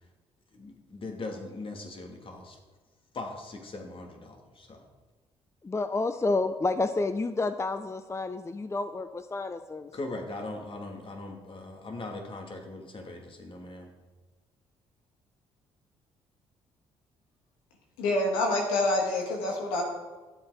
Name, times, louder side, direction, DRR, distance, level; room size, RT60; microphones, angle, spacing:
voice 1, 0.5-2.6 3.1-4.8 9.9-13.9, left 2 dB, 45° left, 2 dB, 2.5 m, -40 dB
voice 2, 5.6-9.9, left 3 dB, 20° left, 11 dB, 0.6 m, -30 dB
voice 3, 18.0-19.8, left 2 dB, 90° left, 0 dB, 1.9 m, -27 dB
12.5 x 7.8 x 5.0 m, 1.3 s
hypercardioid pair, 55°, 13 cm